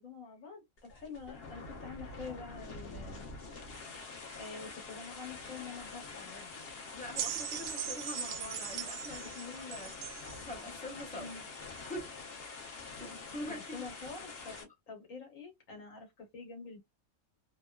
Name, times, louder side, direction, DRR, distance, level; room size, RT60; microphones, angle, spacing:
voice 1, 0.0-3.2 4.4-6.6 11.1-11.4 13.3-16.8, left 5 dB, 70° left, 1.4 m, -47 dB
sound 1, 0.8-14.6, left 3 dB, 50° left, 0.9 m, -46 dB
voice 2, 6.9-10.0 10.4-11.3 11.8-12.1 12.4-12.6 13.0-13.9, left 1 dB, 5° left, 0.7 m, -44 dB
sound 2, 7.2-10.4 11.3-11.4, right 9 dB, 70° right, 0.8 m, -39 dB
3.0 x 2.2 x 2.2 m
omnidirectional pair, 1.4 m